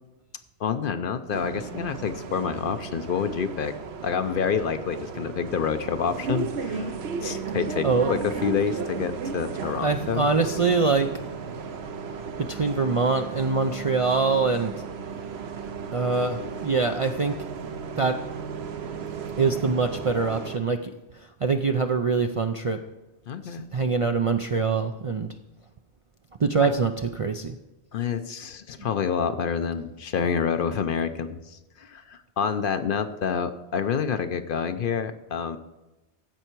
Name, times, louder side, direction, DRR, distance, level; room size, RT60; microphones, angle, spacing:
voice 1, 0.6-3.7 4.0-6.9 7.2-10.3 23.3-23.7 26.6-26.7 27.9-35.6, left 6 dB, 60° left, 10 dB, 0.7 m, -28 dB
Bus, 1.3-20.6, right 5 dB, 75° right, 1.0 m, -35 dB
voice 2, 7.8-8.1 9.8-11.1 12.4-14.7 15.9-17.4 18.0-18.2 19.4-20.9 21.4-22.8 23.4-25.3 26.4-27.6, right 4 dB, 50° right, 6 dB, 0.4 m, -24 dB
15.0 x 5.6 x 4.5 m, 1.1 s
omnidirectional pair, 1.1 m